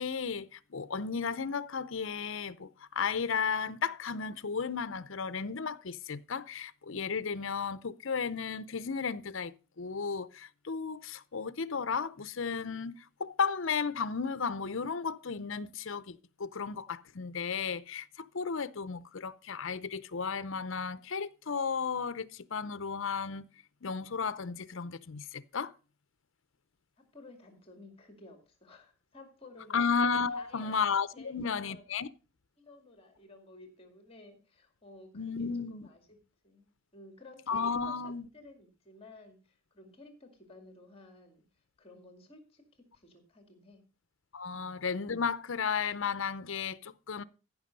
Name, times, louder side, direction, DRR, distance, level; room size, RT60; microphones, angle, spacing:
voice 1, 0.0-23.5 23.8-25.7 29.7-32.1 35.1-35.9 37.5-38.3 44.3-47.2, left 5 dB, 60° left, 0.6 m, -34 dB
voice 2, 27.0-29.8 30.3-30.8 31.1-31.9 32.6-36.2 36.4-38.0 38.3-41.4 41.8-43.8 44.5-44.7, left 2 dB, 25° left, 2.2 m, -54 dB
15.0 x 6.0 x 5.3 m
head